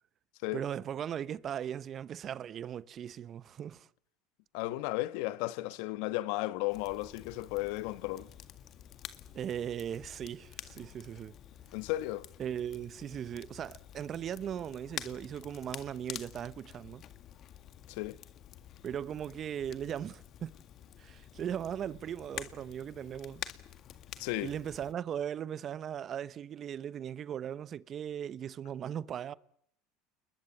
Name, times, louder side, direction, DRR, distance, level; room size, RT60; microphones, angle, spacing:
voice 1, 0.5-3.9 9.3-11.3 12.4-17.0 18.8-20.5 21.0-23.5 24.4-29.3, right 9 dB, 40° right, 0.9 m, -38 dB
voice 2, 4.5-8.3 11.7-12.3 17.9-18.2 24.2-24.5, left 17 dB, 70° left, 1.2 m, -34 dB
Crackle, 6.7-24.9, left 10 dB, 45° left, 1.9 m, -49 dB
29.0 x 21.0 x 7.3 m
supercardioid pair, 105°, 0 cm